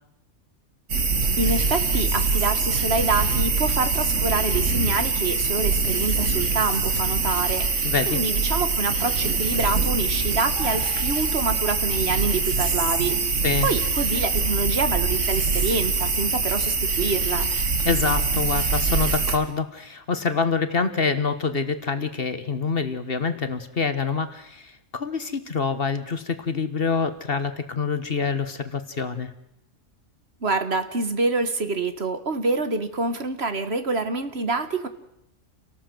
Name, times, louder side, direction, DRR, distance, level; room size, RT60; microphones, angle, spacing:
sound 1, 0.9-19.4, right 4 dB, 80° right, 2.4 m, -24 dB
voice 1, 1.4-7.7 8.1-17.5 30.4-34.9, right 3 dB, 55° right, 10 dB, 1.8 m, -26 dB
voice 2, 7.8-8.2 13.4-13.7 17.8-29.3, left 5 dB, 50° left, 10 dB, 1.6 m, -26 dB
28.0 x 18.0 x 7.8 m, 0.82 s
omnidirectional pair, 1.3 m